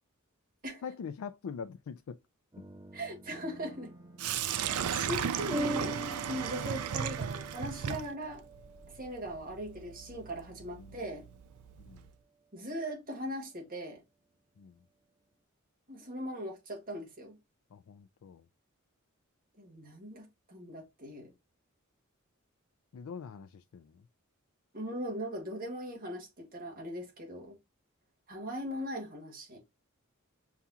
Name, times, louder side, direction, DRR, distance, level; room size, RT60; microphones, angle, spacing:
voice 1, 0.8-2.2 10.8-11.0 11.8-12.1 14.6-14.8 17.7-18.4 22.9-24.0, left 6 dB, 80° left, 0.4 m, -43 dB
sound 1, 2.5-11.6, right 2 dB, 15° right, 0.8 m, -44 dB
voice 2, 2.9-3.9 4.6-8.5 8.9-11.3 12.5-14.0 15.9-17.4 19.6-21.3 24.7-27.6 28.3-29.6, equal, 40° right, 1.7 m, -39 dB
Sink (filling or washing), 4.2-12.1, right 8 dB, 90° right, 0.4 m, -36 dB
7.0 x 2.4 x 2.7 m
head